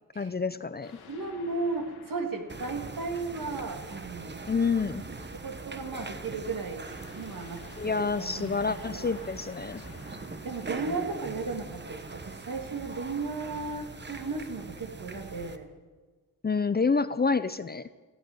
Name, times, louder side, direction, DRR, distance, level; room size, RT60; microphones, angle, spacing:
voice 1, 0.2-1.0 4.5-5.0 7.8-9.8 16.4-17.9, left 4 dB, 25° left, 13 dB, 0.6 m, -28 dB
sound 1, 0.8-3.9 6.8-12.0, left 6 dB, 85° left, 1.8 m, -52 dB
voice 2, 1.1-4.4 5.3-6.8 7.1-9.1 10.4-15.7, right 3 dB, 60° right, 4 dB, 2.4 m, -35 dB
sound 2, 2.5-15.6, right 3 dB, 30° right, 1.2 m, -42 dB
16.0 x 8.9 x 9.4 m, 1.3 s
cardioid pair, 75°, 37 cm